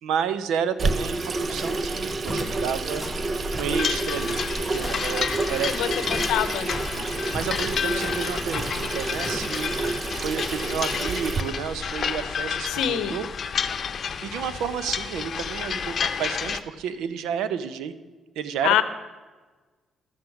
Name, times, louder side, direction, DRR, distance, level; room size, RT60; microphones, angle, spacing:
voice 1, 0.0-6.0 7.1-13.3 14.2-17.9 18.4-18.8, right 8 dB, 90° right, 13 dB, 0.6 m, -31 dB
Water tap faucet / Sink (filling or washing), 0.8-11.4, right 3 dB, 40° right, 0.6 m, -29 dB
sound 1, 1.3-12.6, equal, 25° right, 3.3 m, -37 dB
sound 2, 3.7-16.6, left 7 dB, 50° left, 0.7 m, -30 dB
voice 2, 5.7-6.8 12.7-13.2 18.6-18.8, left 11 dB, 90° left, 12 dB, 0.7 m, -25 dB
12.0 x 7.9 x 5.8 m, 1.3 s
cardioid pair, 90°, 0 cm